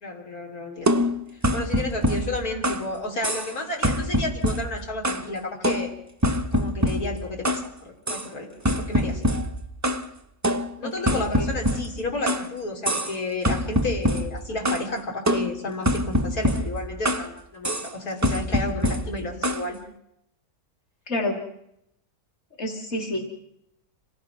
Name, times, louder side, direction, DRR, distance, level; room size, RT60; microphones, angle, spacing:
voice 1, 0.0-0.9 1.5-5.9 6.5-8.5 8.8-9.3 10.8-19.8, left 2 dB, 85° left, 1 dB, 3.7 m, -32 dB
sound 1, 0.9-2.9 3.2-3.6 3.8-5.3 5.6-7.7 8.1-8.3 8.6-10.1 10.4-12.5 12.8-13.2 13.4-14.9 15.3-17.3 17.6-17.9 18.2-19.7, equal, 15° right, 0.6 m, -25 dB
voice 2, 10.8-11.5 21.1-21.4 22.6-23.3, left 1 dB, 50° left, 3 dB, 3.1 m, -29 dB
26.5 x 19.0 x 5.9 m, 0.78 s
omnidirectional pair, 1.5 m